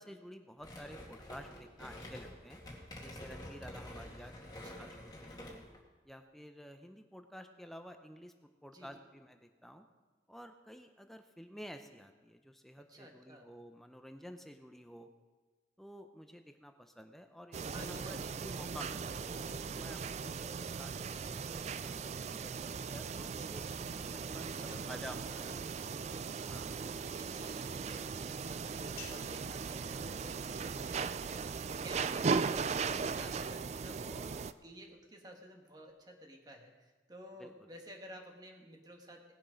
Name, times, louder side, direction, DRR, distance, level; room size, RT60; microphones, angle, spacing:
voice 1, 0.0-2.6 3.0-5.6 6.0-8.3 8.6-9.8 10.3-15.1 15.8-19.2 19.7-25.4 26.5-26.7 30.8-30.9 32.1-32.2 37.4-37.5, equal, ahead, 6 dB, 0.6 m, -51 dB
sound 1, 0.6-5.8, left 1 dB, 25° left, 2.0 m, -48 dB
voice 2, 4.5-5.0 8.7-9.0 12.8-13.5 17.7-18.3 24.4-25.0 25.3-25.6 27.1-31.2 31.7-39.3, equal, 20° right, 2 dB, 1.5 m, -53 dB
sound 2, 17.5-34.5, right 5 dB, 40° right, 0.3 m, -38 dB
sound 3, 29.0-31.4, left 7 dB, 55° left, 2.1 m, -56 dB
18.5 x 7.3 x 5.1 m, 1.3 s
head